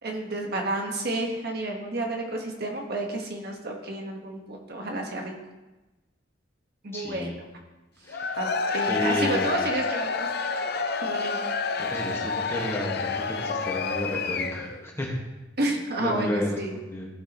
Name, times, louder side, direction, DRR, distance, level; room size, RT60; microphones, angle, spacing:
voice 1, 0.0-5.3 6.8-7.4 8.4-10.3 11.0-11.4 15.6-16.8, right 2 dB, 55° right, 1 dB, 1.4 m, -31 dB
voice 2, 6.9-7.4 8.0-8.4 8.9-9.6 11.8-15.2 16.0-17.1, left 1 dB, 15° left, -2 dB, 1.6 m, -32 dB
Cheering / Crowd, 8.1-14.8, left 4 dB, 60° left, 0.6 m, -29 dB
15.5 x 6.3 x 3.1 m, 1.1 s
head